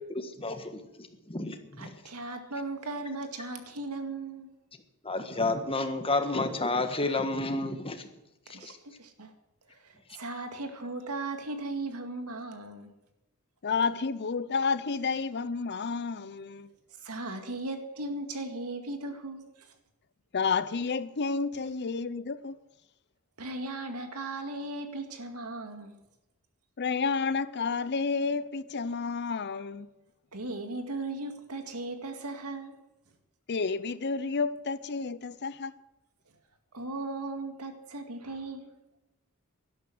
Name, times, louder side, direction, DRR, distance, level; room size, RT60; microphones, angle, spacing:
voice 1, 0.1-0.7 1.3-1.9 5.0-8.0 8.6-8.7, left 2 dB, 25° left, 1.5 m, -30 dB
voice 2, 1.8-4.5 8.5-9.3 9.7-12.9 17.0-19.8 23.4-26.0 30.3-32.8 36.7-38.8, right 2 dB, 85° right, 2.1 m, -37 dB
voice 3, 13.6-16.7 20.3-22.5 26.8-29.9 33.5-35.7, left 4 dB, 50° left, 0.6 m, -30 dB
12.0 x 12.0 x 7.8 m
head